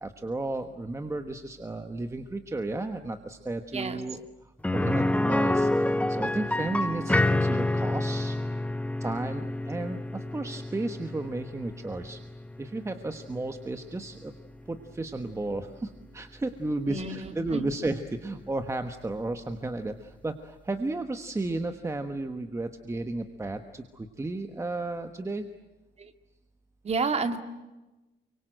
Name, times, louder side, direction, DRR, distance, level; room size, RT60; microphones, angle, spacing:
voice 1, 0.0-4.3 4.7-8.4 9.0-12.2 12.6-14.3 14.7-25.5, right 2 dB, 15° right, 7 dB, 1.2 m, -33 dB
sound 1, 4.6-14.4 14.7-14.8 17.3-17.4, left 1 dB, 5° left, 0.9 m, -28 dB
voice 2, 16.9-17.7 26.0-26.1 26.8-27.4, right 4 dB, 30° right, 7 dB, 2.3 m, -30 dB
29.5 x 24.5 x 7.8 m, 1.1 s
cardioid pair, 175°, 21 cm